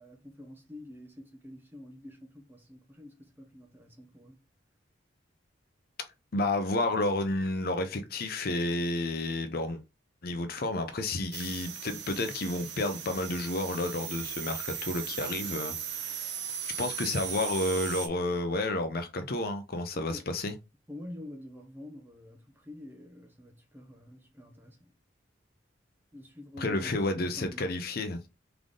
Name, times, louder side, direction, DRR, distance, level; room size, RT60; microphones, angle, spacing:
voice 1, 0.0-4.4 19.9-20.3 20.9-24.9 26.1-27.7, left 1 dB, 10° right, 1.0 m, -47 dB
voice 2, 6.3-9.8 10.2-16.3 16.7-20.5 26.6-28.2, left 2 dB, 50° left, 0.6 m, -31 dB
sound 1, 11.3-18.1, right 8 dB, 60° right, 0.8 m, -38 dB
3.7 x 3.4 x 3.7 m
head